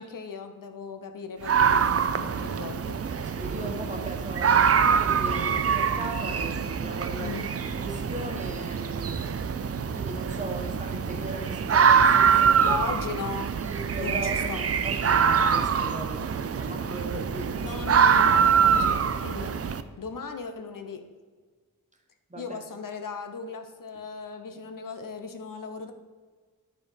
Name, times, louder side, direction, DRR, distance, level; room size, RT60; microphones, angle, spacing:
voice 1, 0.0-3.0 7.2-7.5 12.6-13.5 14.0-14.6 17.6-19.5 20.0-21.0 22.4-25.9, left 5 dB, 80° left, 6 dB, 0.9 m, -37 dB
sound 1, 1.4-19.8, right 7 dB, 45° right, 0.5 m, -24 dB
sound 2, 2.5-13.2, left 4 dB, 15° left, 0.7 m, -49 dB
voice 2, 3.3-7.4 7.8-9.2 9.9-12.8 13.6-16.3 16.6-17.6 18.2-18.4 22.3-22.6, right 1 dB, 20° right, 2 dB, 1.3 m, -37 dB
10.5 x 4.4 x 5.6 m, 1.5 s
wide cardioid pair, 130°, 32 cm